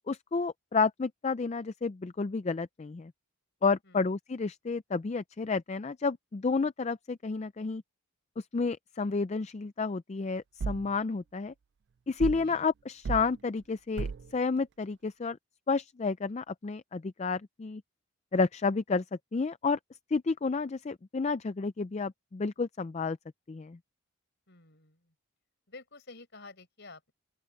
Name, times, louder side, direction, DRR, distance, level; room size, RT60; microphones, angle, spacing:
voice 1, 0.1-3.1 3.6-7.8 8.5-11.5 12.1-14.1 14.3-15.4 15.7-17.8 18.3-19.0 19.3-19.8 20.1-23.2 23.5-23.8, left 4 dB, 30° left, 0.3 m, -30 dB
sound 1, 10.6-10.9 12.2-12.5 13.0-13.3 14.0-14.3, right 5 dB, 50° right, 0.3 m, -34 dB
voice 2, 24.5-25.1 25.7-27.1, left 3 dB, 50° left, 5.4 m, -51 dB
open air
head